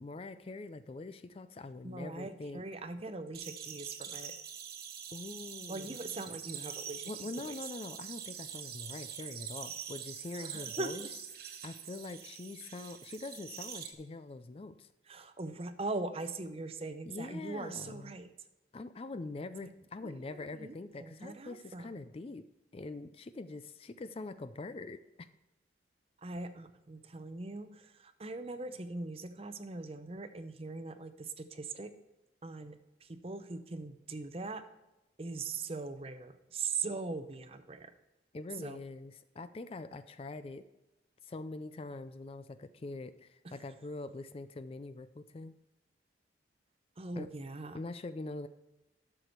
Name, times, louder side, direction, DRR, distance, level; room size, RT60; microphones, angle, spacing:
voice 1, 0.0-2.6 5.1-6.0 7.1-11.1 11.5-14.9 17.1-18.2 18.7-22.4 22.7-25.3 38.3-40.6 41.2-45.5 47.2-47.3 47.7-48.5, left 2 dB, 30° left, 12 dB, 0.3 m, -44 dB
voice 2, 1.8-4.3 5.7-7.1 7.4-7.5 10.4-11.1 15.1-18.3 20.0-21.9 26.2-31.9 32.4-34.6 35.2-37.9 38.6-38.8 47.0-47.8, right 3 dB, 30° right, 10 dB, 0.6 m, -41 dB
sound 1, 3.3-13.9, right 8 dB, 55° right, 1.0 m, -44 dB
12.0 x 6.8 x 4.4 m, 1.0 s
head